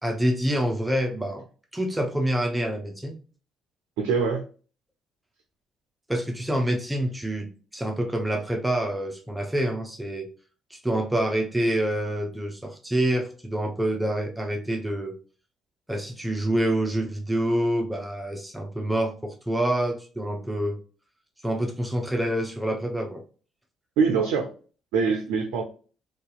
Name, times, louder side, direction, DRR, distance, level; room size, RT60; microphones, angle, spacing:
voice 1, 0.0-1.4 1.7-3.2 6.1-10.3 10.7-15.1 15.9-20.8 21.4-23.2, right 1 dB, 10° right, 3 dB, 0.6 m, -27 dB
voice 2, 4.0-4.4 24.0-24.5 24.9-25.6, right 5 dB, 75° right, 3 dB, 0.4 m, -23 dB
2.7 x 2.3 x 2.4 m, 0.38 s
hypercardioid pair, 50°, 0 cm